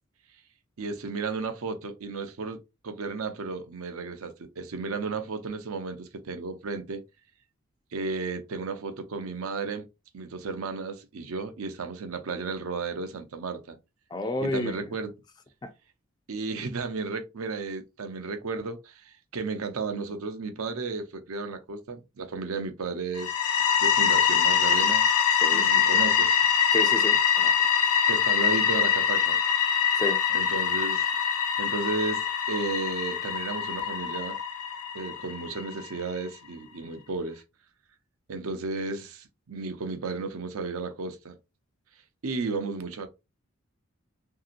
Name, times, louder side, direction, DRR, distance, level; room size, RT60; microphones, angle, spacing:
voice 1, 0.8-7.0 7.9-9.9 10.1-13.8 14.4-15.1 16.3-23.3 23.8-25.1 25.5-26.4 28.1-29.4 30.3-34.4 34.9-37.4 38.3-41.4 42.2-43.1, right 4 dB, 75° right, 0.6 m, -33 dB
voice 2, 14.1-14.9 15.6-15.7 25.4-25.7 26.7-27.5 30.0-30.2, left 2 dB, 20° left, 0.3 m, -31 dB
sound 1, 23.1-35.9, left 7 dB, 85° left, 0.6 m, -24 dB
2.9 x 2.7 x 2.5 m
head